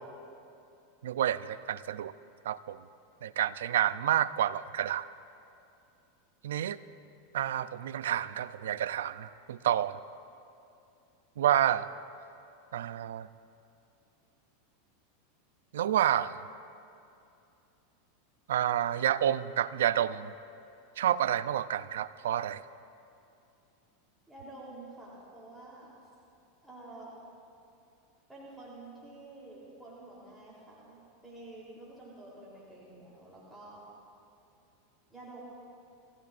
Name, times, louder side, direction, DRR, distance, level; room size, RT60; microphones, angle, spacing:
voice 1, 1.0-2.1 2.5-2.8 3.2-5.1 6.4-6.8 7.3-10.0 11.4-11.9 12.7-13.3 15.7-16.4 18.5-20.3 21.0-22.6, right 11 dB, 80° right, 15 dB, 0.5 m, -29 dB
voice 2, 24.3-25.9 26.6-27.1 28.3-33.9 35.1-35.4, right 2 dB, 5° right, -7 dB, 3.5 m, -49 dB
30.0 x 14.0 x 2.5 m, 2.6 s
hypercardioid pair, 115°, 0 cm